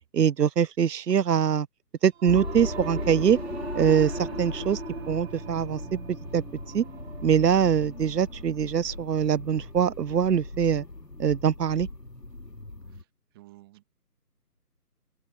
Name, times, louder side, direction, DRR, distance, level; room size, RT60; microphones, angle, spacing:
voice 1, 0.1-1.7 2.0-3.4 3.7-4.8 5.1-5.8 6.1-6.4 6.7-6.8 7.2-10.8 11.2-11.9, right 8 dB, 80° right, 0.7 m, -23 dB
Singing / Musical instrument, 2.1-11.7, right 5 dB, 40° right, 3.6 m, -43 dB
sound 1, 2.2-13.0, left 2 dB, 85° left, 4.5 m, -37 dB
voice 2, 13.3-13.9, right 18 dB, 15° right, 2.0 m, -51 dB
open air
figure-of-eight pair, 155°, 48 cm